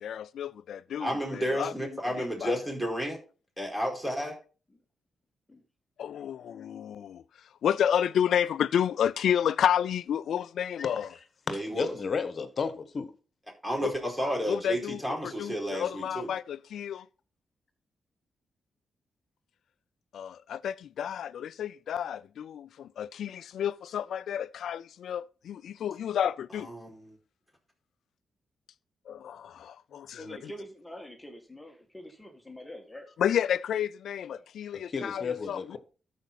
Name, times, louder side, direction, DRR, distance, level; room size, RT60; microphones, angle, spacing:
voice 1, 0.0-1.7 2.2-2.5 6.0-7.2 7.6-11.1 13.8-13.9 14.5-17.1 20.1-26.7 29.1-30.5 33.2-35.8, left 9 dB, 75° left, 0.3 m, -30 dB
voice 2, 1.0-3.2 3.6-4.3 11.5-11.9 13.6-16.3 26.6-27.2, equal, 10° right, 4.7 m, -32 dB
voice 3, 11.7-13.1 34.9-35.8, left 5 dB, 55° left, 1.2 m, -32 dB
voice 4, 30.2-33.1 34.3-34.5, equal, 15° left, 1.8 m, -45 dB
13.0 x 5.1 x 4.1 m
supercardioid pair, 50°, 0 cm